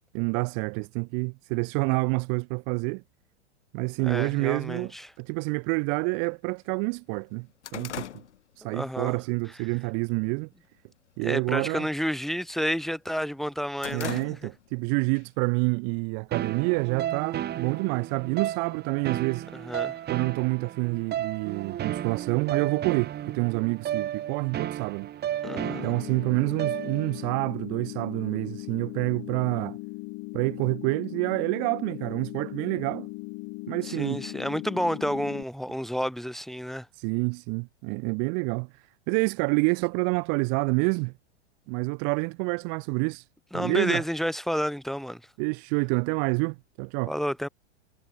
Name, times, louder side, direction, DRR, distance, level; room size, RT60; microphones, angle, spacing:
voice 1, 0.1-3.0 3.7-4.9 5.2-7.5 7.7-8.1 8.6-10.5 11.2-11.9 13.9-19.5 20.1-25.1 25.8-29.8 30.3-33.1 33.7-34.2 36.9-41.1 41.7-43.2 43.5-44.0 45.4-47.1, right 40 dB or more, 45° right, 1.1 m, -28 dB
voice 2, 4.0-5.1 8.7-9.2 11.2-14.5 19.5-20.0 25.4-25.9 33.8-36.9 43.5-45.2 47.1-47.5, equal, ahead, 1.0 m, -30 dB
sound 1, 5.8-5.9 6.3-6.4 6.8-9.2 9.6-9.9 10.3-10.8 11.1-11.4 11.7-12.9 13.3-14.8 15.2-15.3 16.2-17.1, left 11 dB, 80° left, 4.0 m, -41 dB
sound 2, 16.3-27.3, right 11 dB, 30° right, 3.9 m, -33 dB
sound 3, 25.4-35.4, left 28 dB, 45° left, 3.4 m, -39 dB
hypercardioid pair, 120°, 34 cm